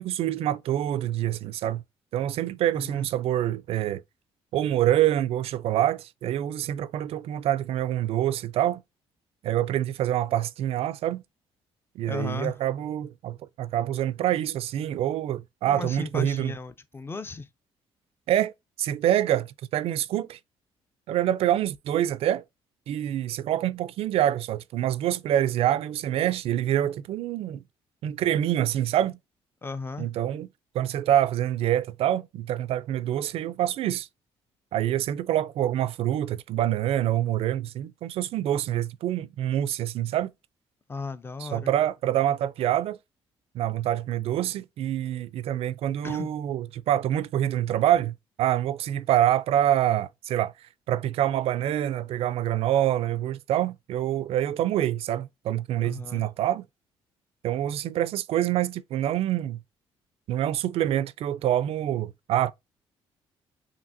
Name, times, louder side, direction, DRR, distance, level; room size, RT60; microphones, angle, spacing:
voice 1, 0.0-1.8 2.1-4.0 4.5-8.8 9.4-11.2 12.0-16.5 18.3-18.5 18.8-20.4 21.1-22.4 22.9-27.6 28.0-29.2 30.0-30.5 30.7-34.1 34.7-40.3 41.4-43.0 43.5-50.5 50.9-56.6 57.4-59.6 60.3-62.5, right 12 dB, 70° right, 0.4 m, -26 dB
voice 2, 2.7-3.1 12.1-12.6 15.7-17.5 29.6-30.1 40.9-41.7 46.0-46.3 55.8-56.3, left 3 dB, 20° left, 0.5 m, -35 dB
5.8 x 2.7 x 2.6 m
cardioid pair, 95°, 10 cm